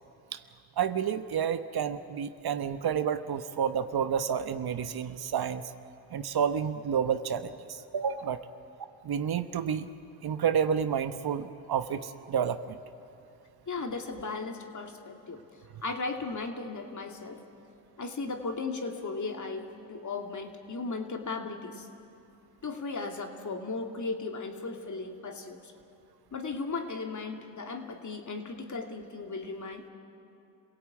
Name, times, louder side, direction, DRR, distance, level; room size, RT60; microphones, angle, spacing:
voice 1, 0.8-5.6 6.1-8.4 9.0-9.9 10.2-12.8, right 8 dB, 60° right, 10 dB, 1.1 m, -30 dB
voice 2, 13.7-15.4 15.8-17.4 18.0-21.9 22.6-25.7 26.3-29.8, left 3 dB, 40° left, 4 dB, 2.6 m, -36 dB
27.0 x 17.0 x 8.5 m, 2.7 s
supercardioid pair, 55°, 43 cm